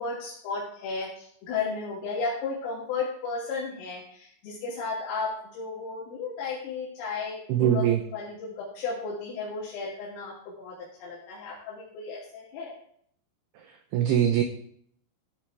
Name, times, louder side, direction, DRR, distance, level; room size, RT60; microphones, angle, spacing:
voice 1, 0.0-12.7, left 4 dB, 80° left, -7 dB, 5.2 m, -34 dB
voice 2, 7.5-8.0 13.9-14.4, right 10 dB, 85° right, 5 dB, 2.3 m, -22 dB
15.0 x 9.8 x 3.5 m, 0.63 s
omnidirectional pair, 5.9 m